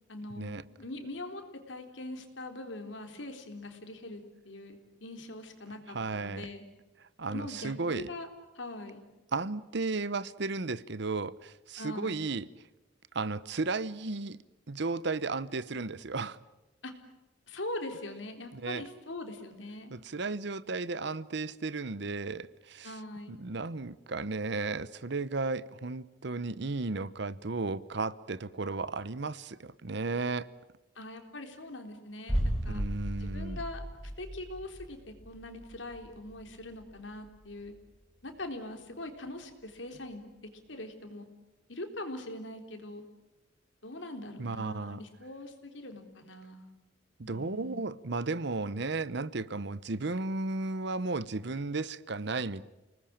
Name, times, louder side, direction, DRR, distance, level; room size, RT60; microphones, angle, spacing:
voice 1, 0.1-6.6 7.3-8.3 8.5-9.0 11.8-12.3 16.8-16.9 17.5-19.9 22.8-23.4 31.0-32.8 33.2-37.7 38.2-40.2 40.7-41.3 41.7-43.0 43.8-46.7 47.2-47.8, left 2 dB, 75° left, 3.8 m, -42 dB
voice 2, 5.9-6.5 7.2-8.1 9.3-12.5 13.1-14.4 14.7-16.4 18.5-18.8 19.9-23.0 23.3-30.5 32.6-33.6 44.4-45.0 47.2-52.6, right 3 dB, 65° right, 0.9 m, -34 dB
sound 1, 32.3-38.0 38.3-38.4, equal, ahead, 7.5 m, -36 dB
29.5 x 20.0 x 8.8 m
head